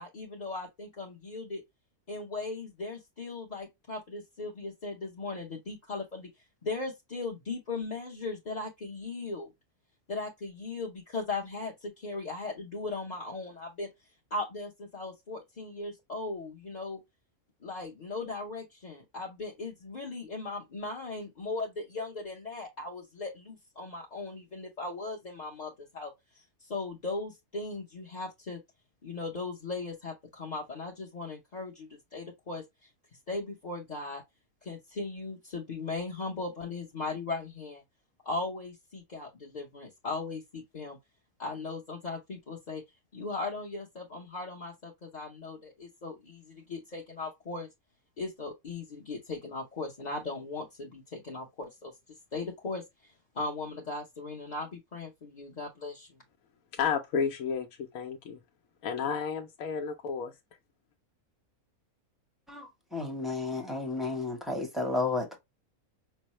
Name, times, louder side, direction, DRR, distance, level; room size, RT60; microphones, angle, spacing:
voice 1, 0.0-1.6 2.1-6.3 6.6-9.5 10.1-13.9 14.3-17.0 17.6-28.6 29.0-32.9 33.3-34.2 34.6-37.8 38.2-41.0 41.4-42.8 43.1-47.7 48.2-51.9 52.3-52.8 53.3-56.2, left 3 dB, 35° left, 0.7 m, -38 dB
voice 2, 56.7-58.4 58.8-60.3, left 6 dB, 70° left, 1.0 m, -32 dB
voice 3, 62.5-65.4, left 3 dB, ahead, 0.6 m, -32 dB
5.4 x 2.0 x 2.9 m
omnidirectional pair, 1.5 m